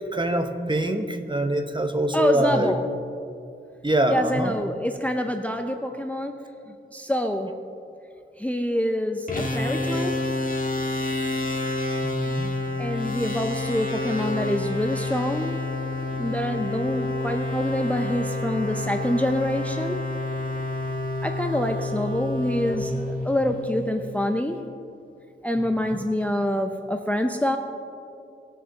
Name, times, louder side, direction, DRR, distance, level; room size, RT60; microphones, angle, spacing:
voice 1, 0.1-2.7 3.8-4.6 12.0-12.5 25.6-26.0, right 1 dB, 25° right, 6 dB, 0.9 m, -25 dB
voice 2, 2.1-2.8 4.1-6.4 6.9-7.5 8.4-10.2 12.8-15.6 16.2-20.0 21.2-23.0 23.2-24.7 25.4-27.6, left 1 dB, 5° left, 5 dB, 0.5 m, -26 dB
sound 1, 9.3-23.8, left 2 dB, 40° left, 1.6 m, -29 dB
19.5 x 6.6 x 4.0 m, 2.5 s
wide cardioid pair, 85°, 21 cm